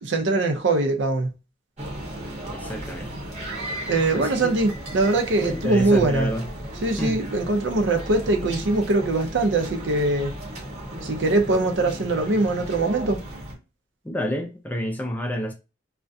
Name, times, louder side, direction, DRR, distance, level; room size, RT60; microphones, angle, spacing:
voice 1, 0.0-1.3 3.9-6.3 6.8-10.3 11.0-13.2, right 2 dB, 80° right, 0.5 m, -22 dB
sound 1, 1.8-13.5, equal, 35° right, 0.8 m, -35 dB
voice 2, 2.5-3.1 4.1-4.3 5.4-6.5 7.0-7.2 14.0-15.5, equal, 10° left, 0.3 m, -29 dB
2.4 x 2.1 x 2.5 m
head